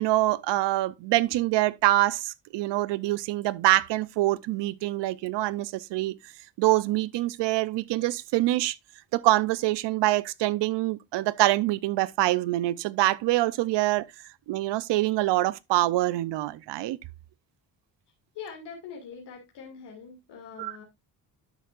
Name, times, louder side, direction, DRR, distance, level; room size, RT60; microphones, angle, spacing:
voice 1, 0.0-6.1 6.6-8.8 9.1-14.0 14.5-17.0 20.6-20.8, right 17 dB, 85° right, 0.7 m, -25 dB
voice 2, 18.3-20.8, left 6 dB, 85° left, 2.5 m, -43 dB
11.5 x 6.5 x 2.5 m
cardioid pair, 130°, 41 cm